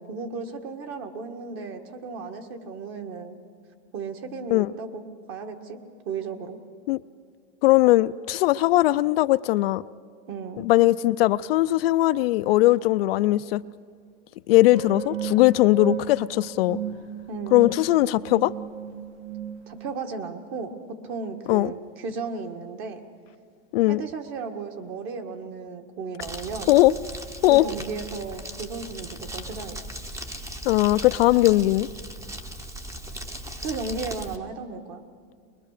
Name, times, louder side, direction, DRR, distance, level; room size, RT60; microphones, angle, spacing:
voice 1, 0.0-3.3 3.9-5.8 6.0-6.6 10.3-10.6 17.3-17.7 19.7-20.7 21.0-23.0 23.9-26.7 27.5-29.8 33.6-35.0, right 4 dB, 40° right, 1.7 m, -35 dB
voice 2, 7.6-9.8 10.6-13.6 14.5-16.8 17.5-18.5 21.5-21.7 23.7-24.0 26.7-26.9 27.4-27.6 30.6-31.9, left 17 dB, 60° left, 0.5 m, -19 dB
sound 1, 14.7-20.0, right 8 dB, 80° right, 1.2 m, -34 dB
Crumpling crinkling, 26.2-34.4, right 1 dB, 10° right, 0.8 m, -38 dB
22.5 x 22.0 x 6.6 m
supercardioid pair, 150°, 34 cm